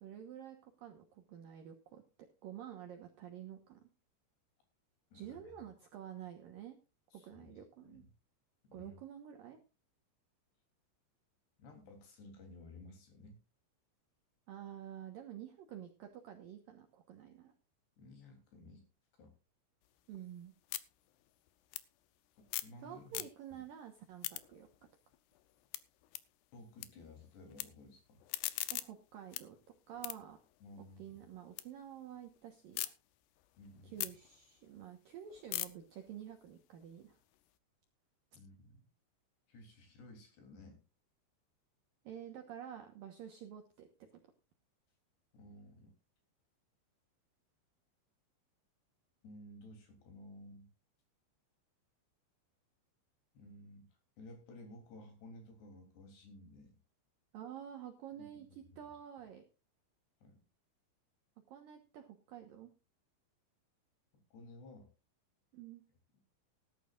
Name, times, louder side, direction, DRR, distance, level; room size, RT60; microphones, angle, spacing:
voice 1, 0.0-2.0 2.4-3.8 5.1-6.8 7.1-8.0 8.7-9.6 14.5-17.5 20.1-20.5 22.8-24.7 28.7-29.6 29.9-30.4 31.0-32.9 33.8-37.2 42.0-43.9 57.3-59.4 61.5-62.7 65.5-65.8, right 10 dB, 70° right, 4 dB, 2.2 m, -49 dB
voice 2, 5.1-5.6 7.1-8.1 8.6-9.0 11.6-13.4 18.0-18.9 19.2-19.3 22.6-23.3 23.5-23.6 26.5-28.2 30.6-31.3 33.6-34.1 38.4-38.8 39.5-40.8 45.3-45.9 49.2-50.7 53.4-53.9 54.2-56.7 58.2-58.3 58.6-58.8 60.2-60.4 64.3-64.9, left 1 dB, 60° left, 4 dB, 5.3 m, -55 dB
sound 1, 19.8-22.8 23.1-23.7 24.0-26.9 27.2-27.6 28.1-31.7 32.0-32.9 33.4-37.5, left 17 dB, 85° left, 2.5 m, -44 dB
18.5 x 11.5 x 2.5 m, 0.31 s
omnidirectional pair, 5.6 m